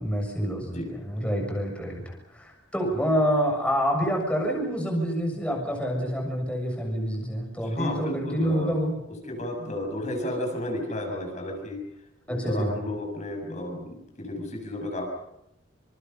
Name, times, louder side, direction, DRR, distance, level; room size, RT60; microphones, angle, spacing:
voice 1, 0.0-9.0 12.3-12.7, equal, 5° left, 0 dB, 7.1 m, -27 dB
voice 2, 7.6-8.8 9.1-11.8 12.3-15.0, left 1 dB, 35° left, 2 dB, 7.0 m, -32 dB
29.5 x 27.5 x 5.7 m, 0.83 s
head